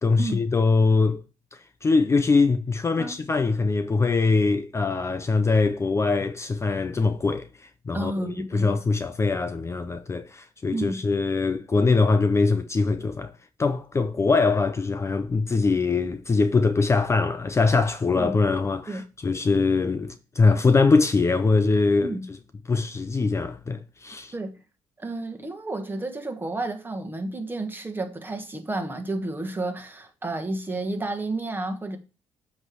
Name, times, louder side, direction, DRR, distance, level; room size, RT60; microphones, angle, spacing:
voice 1, 0.0-1.2 1.5-13.3 13.6-22.4 22.7-24.3, left 4 dB, 25° left, 0.5 m, -22 dB
voice 2, 7.9-8.7 10.7-11.0 18.1-18.3 18.9-19.0 22.0-22.2 24.3-24.5 25.0-32.0, right 2 dB, 20° right, 1.4 m, -31 dB
7.8 x 3.2 x 6.1 m
cardioid pair, 85°, 11 cm